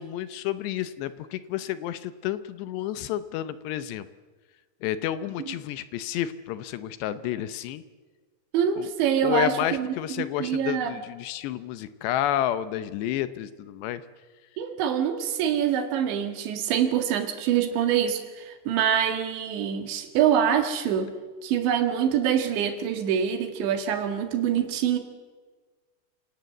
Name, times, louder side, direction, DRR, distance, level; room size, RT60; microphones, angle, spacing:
voice 1, 0.0-4.1 4.8-7.8 8.8-8.9 9.2-14.0, left 12 dB, 75° left, 13 dB, 2.8 m, -30 dB
voice 2, 8.5-9.9 10.4-10.9 14.6-21.1 21.4-25.0, right 9 dB, 75° right, 7 dB, 4.1 m, -25 dB
27.5 x 18.0 x 7.9 m, 1.4 s
omnidirectional pair, 5.2 m